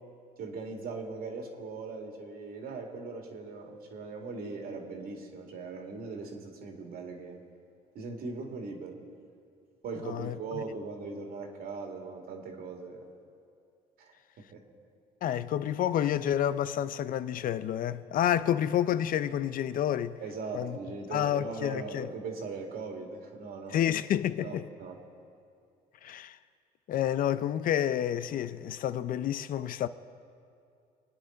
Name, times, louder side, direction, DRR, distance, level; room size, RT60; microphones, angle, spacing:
voice 1, 0.4-7.4 7.9-8.9 9.8-13.0 14.0-14.6 20.2-23.8 24.4-25.0, right 4 dB, 65° right, 2.3 m, -40 dB
voice 2, 10.0-10.6 15.2-20.2 20.5-20.8 21.1-22.1 23.7-24.6 26.0-26.4 26.9-29.9, left 10 dB, 55° left, 0.5 m, -29 dB
26.0 x 9.6 x 3.9 m
cardioid pair, 110°, 17 cm